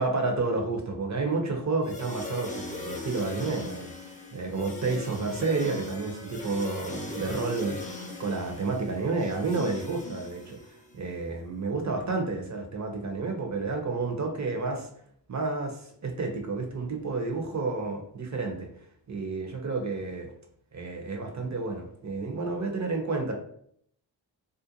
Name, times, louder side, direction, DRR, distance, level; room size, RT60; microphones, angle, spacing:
voice 1, 0.0-3.9 4.3-7.8 8.2-14.9 15.3-18.7 19.1-20.3 20.7-23.3, right 3 dB, 35° right, 3 dB, 0.7 m, -30 dB
sound 1, 1.8-11.0, left 2 dB, 15° left, 0.6 m, -40 dB
2.5 x 2.1 x 2.8 m, 0.67 s
supercardioid pair, 40°, 49 cm